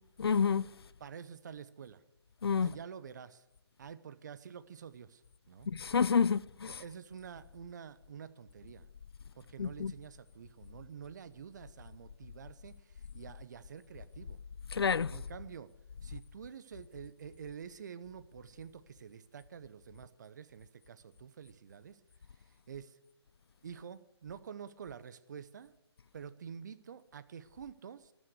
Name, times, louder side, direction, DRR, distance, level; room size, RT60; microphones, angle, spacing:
voice 1, 0.2-0.7 2.4-2.7 5.7-6.8 9.6-9.9 14.7-15.1, left 6 dB, 65° left, 0.4 m, -29 dB
voice 2, 1.0-2.0 2.6-3.4 3.8-5.2 5.5-5.7 6.7-8.9 9.3-14.4 15.1-15.7 16.0-22.0 22.7-23.0 23.6-25.7 26.1-28.1, right 7 dB, 40° right, 0.9 m, -48 dB
15.5 x 11.0 x 6.6 m
figure-of-eight pair, 150°, 14 cm